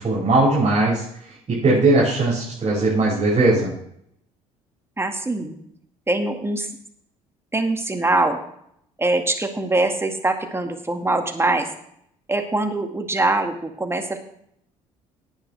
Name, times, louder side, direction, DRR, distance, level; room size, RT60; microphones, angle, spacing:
voice 1, 0.0-3.7, right 2 dB, 35° right, -7 dB, 6.0 m, -19 dB
voice 2, 5.0-5.6 6.1-6.7 7.5-8.4 9.0-11.7 12.3-14.2, right 2 dB, 15° right, 5 dB, 2.0 m, -23 dB
17.5 x 9.0 x 3.4 m, 0.70 s
figure-of-eight pair, 55°, 18 cm